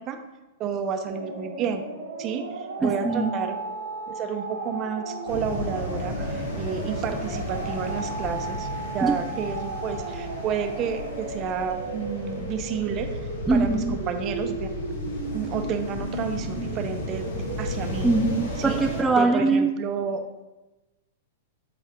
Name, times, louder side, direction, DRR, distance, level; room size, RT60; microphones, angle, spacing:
voice 1, 0.6-1.8 2.2-3.6 4.1-13.2 13.5-14.7 15.3-18.1 18.6-18.8 19.1-20.2, right 7 dB, 35° right, 6 dB, 0.7 m, -30 dB
sound 1, 1.0-19.2, right 3 dB, 80° right, 1.4 m, -35 dB
voice 2, 2.8-3.3 9.0-9.1 13.5-13.9 18.0-19.7, right 3 dB, 10° right, 3 dB, 0.3 m, -22 dB
sound 2, 5.3-19.0, left 2 dB, 75° left, 1.5 m, -34 dB
8.2 x 4.2 x 3.6 m, 1.1 s
hypercardioid pair, 125°, 0 cm